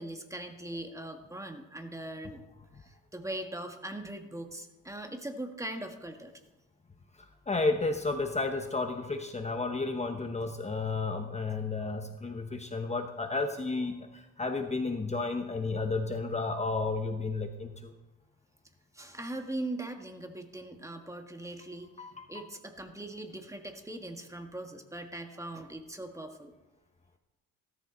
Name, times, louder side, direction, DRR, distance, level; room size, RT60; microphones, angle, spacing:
voice 1, 0.0-2.4 2.8-6.3 18.9-26.5, right 1 dB, 10° right, 4 dB, 1.9 m, -40 dB
voice 2, 7.2-17.9 22.0-22.3, left 3 dB, 20° left, 5 dB, 1.2 m, -32 dB
17.0 x 13.5 x 4.0 m, 1.1 s
cardioid pair, 90°, 30 cm